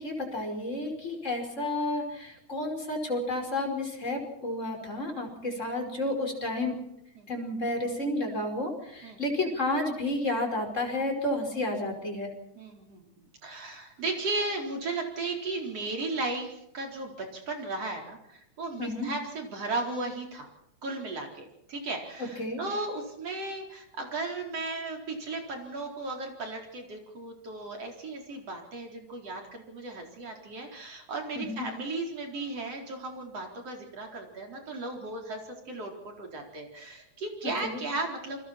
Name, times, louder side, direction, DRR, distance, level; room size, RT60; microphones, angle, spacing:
voice 1, 0.0-6.8 7.3-12.3 18.8-19.1 22.4-22.6 31.4-31.7 37.6-37.8, left 1 dB, 25° left, 3 dB, 5.3 m, -31 dB
voice 2, 12.6-13.0 13.4-20.5 20.8-38.4, right 2 dB, 55° right, 2 dB, 5.3 m, -35 dB
29.0 x 23.5 x 4.4 m, 0.80 s
omnidirectional pair, 3.4 m